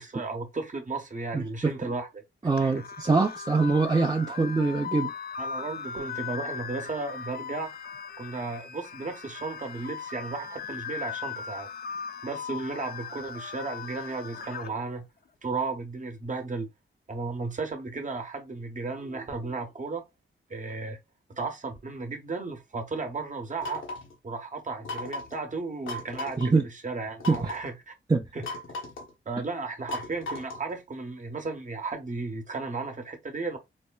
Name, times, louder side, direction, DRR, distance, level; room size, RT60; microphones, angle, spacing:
voice 1, 0.0-2.2 2.6-2.9 4.3-4.4 5.4-7.7 8.2-11.7 12.2-15.1 15.4-16.7 17.1-20.0 20.5-21.0 21.3-23.8 24.2-27.9 28.3-28.5 29.3-33.6, right 3 dB, 40° right, 0.9 m, -34 dB
voice 2, 1.3-1.7 2.4-5.1 26.4-26.6 27.3-27.4 28.1-28.2, right 3 dB, 20° right, 0.5 m, -24 dB
sound 1, 2.6-14.7, left 6 dB, 50° left, 0.5 m, -38 dB
sound 2, 23.6-24.1 24.8-25.4 25.9-26.5 27.2-27.7 28.4-29.1 29.9-30.7, left 2 dB, 80° left, 1.2 m, -36 dB
4.1 x 2.2 x 2.2 m
cardioid pair, 60°, 20 cm